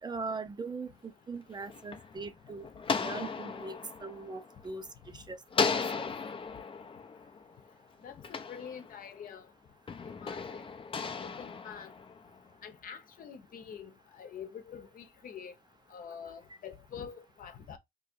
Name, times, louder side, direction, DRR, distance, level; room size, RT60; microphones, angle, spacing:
voice 1, 0.0-2.7 2.9-6.1, right 4 dB, 25° right, 0.7 m, -41 dB
sound 1, 1.3-5.1 5.5-9.3 9.9-12.5, left 5 dB, 35° left, 0.6 m, -36 dB
voice 2, 8.0-9.5 10.0-10.6 11.2-11.9 12.6-15.5 15.9-17.8, left 7 dB, 65° left, 0.9 m, -46 dB
3.1 x 2.6 x 4.4 m
cardioid pair, 75°, 16 cm